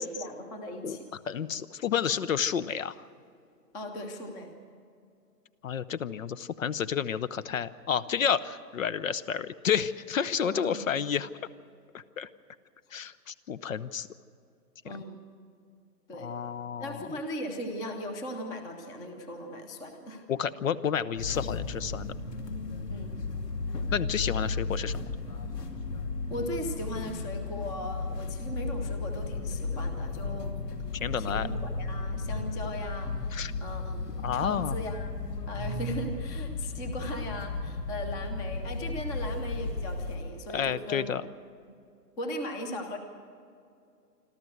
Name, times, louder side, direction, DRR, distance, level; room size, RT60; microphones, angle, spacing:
voice 1, 0.0-1.1 3.7-4.6 10.4-11.0 14.8-15.2 16.1-16.4 16.8-20.2 22.9-23.1 26.3-30.6 30.9-33.2 33.6-35.1 35.5-41.2 42.2-43.0, equal, 10° left, 6 dB, 0.7 m, -38 dB
voice 2, 1.3-3.0 5.6-11.3 11.9-12.3 12.9-14.1 16.1-17.1 20.3-22.1 23.9-25.0 30.9-31.5 33.3-33.5 34.2-34.8 40.5-41.2, left 8 dB, 55° left, 17 dB, 0.8 m, -30 dB
sound 1, 21.2-40.2, left 3 dB, 75° left, 3.0 m, -34 dB
26.5 x 13.5 x 7.8 m, 2.5 s
hypercardioid pair, 150°, 48 cm